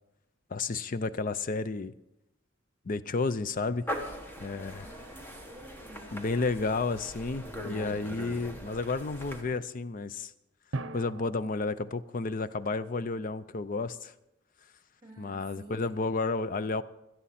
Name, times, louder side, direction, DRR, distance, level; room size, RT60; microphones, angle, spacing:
voice 1, 0.5-1.9 2.9-3.9 4.4-4.9 6.1-10.3 10.9-14.1 15.2-16.8, left 3 dB, 45° left, 14 dB, 0.5 m, -31 dB
sound 1, 3.9-9.4, equal, 10° left, 1.5 m, -41 dB
voice 2, 4.8-6.2 8.2-8.5 15.0-16.0, right 1 dB, 20° right, -2 dB, 2.5 m, -51 dB
Drum, 10.7-13.0, right 2 dB, 65° right, 0.7 m, -41 dB
17.0 x 13.0 x 4.3 m, 0.92 s
head